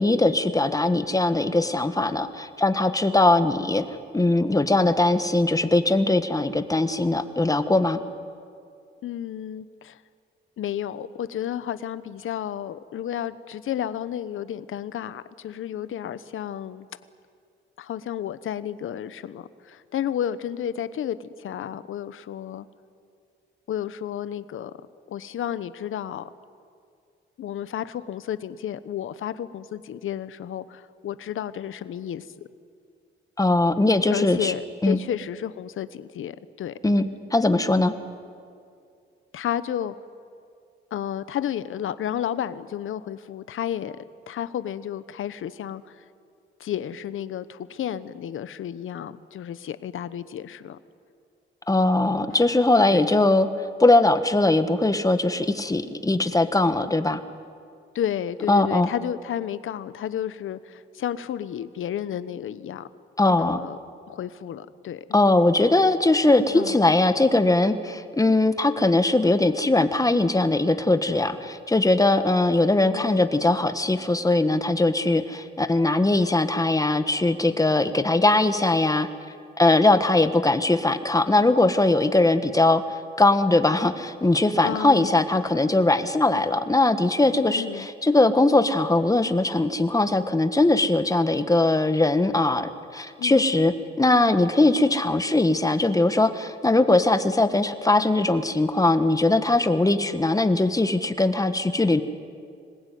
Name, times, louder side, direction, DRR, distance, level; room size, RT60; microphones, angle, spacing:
voice 1, 0.0-3.8 4.1-8.0 33.4-34.5 34.8-35.0 36.8-37.9 51.7-53.5 53.8-57.2 58.5-58.9 63.2-63.6 65.1-79.1 79.6-102.0, left 2 dB, 15° left, 10 dB, 1.6 m, -20 dB
voice 2, 9.0-10.0 10.6-16.9 17.8-22.7 23.7-24.7 25.1-26.3 27.4-32.3 34.1-36.8 39.3-39.9 40.9-44.0 44.3-46.0 46.6-50.8 52.9-53.1 57.9-62.9 63.2-63.8 64.1-65.0 66.5-66.8 72.9-73.2 84.6-85.1 87.6-87.9 93.2-93.5, left 10 dB, 75° left, 14 dB, 1.1 m, -32 dB
26.0 x 20.5 x 9.4 m, 2.3 s
cardioid pair, 90°, 21 cm